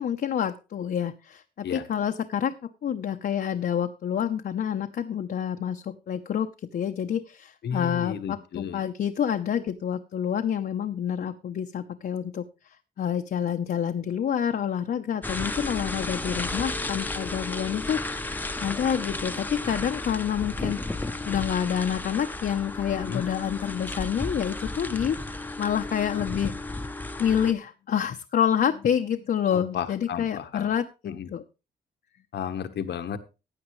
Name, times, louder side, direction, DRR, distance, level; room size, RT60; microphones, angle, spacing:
voice 1, 0.0-18.0 18.6-20.8 21.2-26.5 27.2-31.4, left 9 dB, 65° left, 5 dB, 0.7 m, -28 dB
voice 2, 7.6-8.8 22.9-23.2 29.5-30.7 31.0-31.3 32.3-33.2, left 8 dB, 85° left, 9 dB, 1.2 m, -33 dB
sound 1, 15.2-27.5, left 2 dB, 10° left, 0.7 m, -33 dB
16.0 x 9.3 x 3.2 m, 0.29 s
wide cardioid pair, 150°, 17 cm